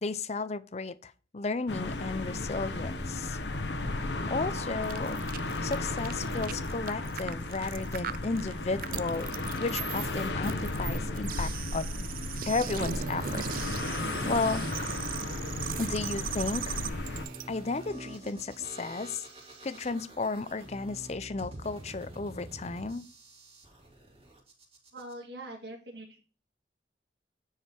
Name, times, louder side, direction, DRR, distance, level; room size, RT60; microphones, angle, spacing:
voice 1, 0.0-3.4 4.3-5.2 5.6-9.3 9.6-11.9 12.5-13.5 13.8-14.6 15.8-16.8 17.5-19.2 19.6-23.0, left 3 dB, 40° left, 0.5 m, -33 dB
sound 1, 1.7-17.3, left 2 dB, 85° left, 1.1 m, -34 dB
sound 2, 4.8-17.4, right 8 dB, 50° right, 0.4 m, -39 dB
sound 3, 17.1-25.1, right 1 dB, 35° right, 2.8 m, -47 dB
voice 2, 24.9-26.2, right 1 dB, 70° right, 1.8 m, -43 dB
9.8 x 4.9 x 4.4 m
head